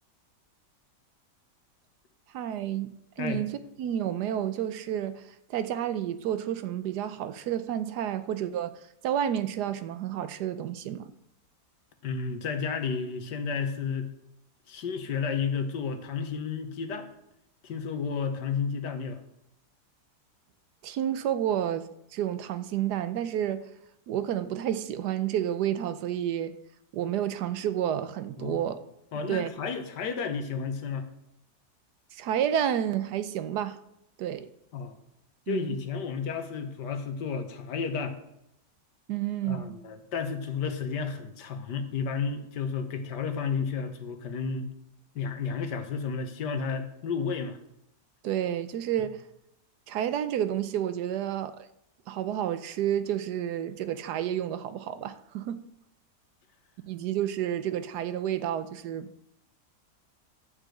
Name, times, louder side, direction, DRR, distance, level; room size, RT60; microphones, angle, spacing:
voice 1, 2.3-5.2 5.5-8.8 9.0-11.1 20.8-23.7 24.1-26.5 26.9-28.8 29.3-29.5 32.1-33.8 34.2-34.5 35.5-35.8 39.1-39.8 48.2-49.2 49.9-51.7 52.1-55.6 56.9-59.1, right 10 dB, 75° right, 1.2 m, -30 dB
voice 2, 12.0-14.1 14.7-17.1 17.6-19.2 28.4-28.6 29.1-31.1 34.7-35.0 35.5-38.2 39.4-44.7 45.1-47.6, left 5 dB, 85° left, 1.7 m, -32 dB
11.5 x 5.0 x 7.7 m
omnidirectional pair, 1.8 m